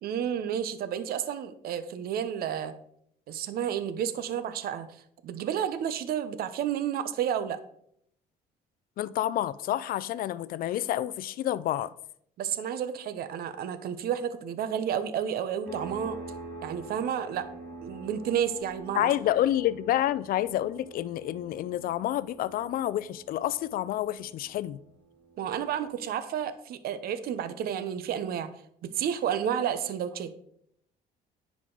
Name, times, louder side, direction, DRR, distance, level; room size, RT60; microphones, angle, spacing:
voice 1, 0.0-2.7 3.3-4.9 5.2-7.6 12.4-16.2 16.6-17.5 17.8-19.1 25.4-28.5 28.8-30.5, right 9 dB, 65° right, 0.7 m, -31 dB
voice 2, 9.0-11.9 18.9-24.8, left 13 dB, 60° left, 0.4 m, -29 dB
sound 1, 15.7-26.0, right 3 dB, 15° left, 2.6 m, -46 dB
9.7 x 4.9 x 3.8 m
cardioid pair, 110°, 17 cm